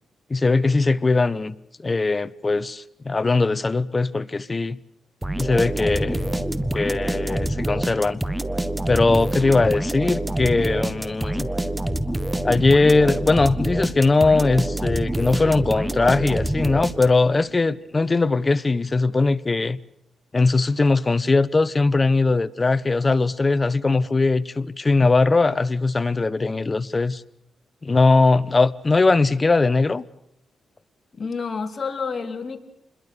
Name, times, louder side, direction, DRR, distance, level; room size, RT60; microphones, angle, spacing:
voice 1, 0.3-4.8 5.4-6.4 6.7-8.2 8.9-11.5 12.4-19.8 20.3-27.2 27.8-30.0, left 3 dB, 30° left, 0.9 m, -20 dB
sound 1, 5.2-17.4, right 1 dB, 10° right, 1.4 m, -26 dB
voice 2, 31.1-32.6, left 5 dB, 45° left, 2.8 m, -29 dB
28.0 x 21.5 x 6.7 m
cardioid pair, 90°, 0 cm